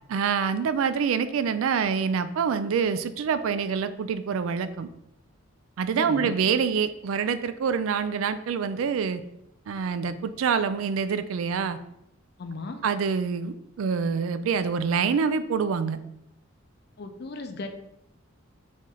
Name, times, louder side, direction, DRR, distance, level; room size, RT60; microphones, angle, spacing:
voice 1, 0.1-4.9 5.8-9.2 9.7-11.8 12.8-16.0, right 6 dB, 85° right, 12 dB, 0.4 m, -26 dB
voice 2, 6.0-6.4 12.4-12.8 17.0-17.7, left 3 dB, 55° left, 7 dB, 0.5 m, -35 dB
4.1 x 3.1 x 3.7 m, 0.79 s
head